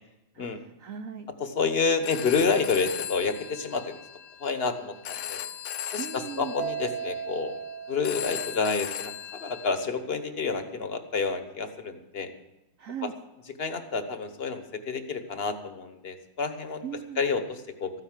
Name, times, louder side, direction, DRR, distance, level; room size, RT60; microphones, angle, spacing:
voice 1, 0.3-1.3 6.0-6.5 12.8-13.1 16.8-17.2, right 8 dB, 65° right, 8 dB, 0.8 m, -38 dB
voice 2, 1.4-4.0 4.4-5.4 5.9-7.6 7.9-9.1 9.4-12.3 13.0-13.1 13.6-16.8 17.2-17.9, left 4 dB, 35° left, 8 dB, 1.1 m, -29 dB
Telephone, 1.9-9.7, left 9 dB, 80° left, 1.6 m, -38 dB
Mallet percussion, 6.6-9.0, right 8 dB, 85° right, 2.6 m, -37 dB
14.0 x 9.8 x 7.4 m, 1.0 s
omnidirectional pair, 2.2 m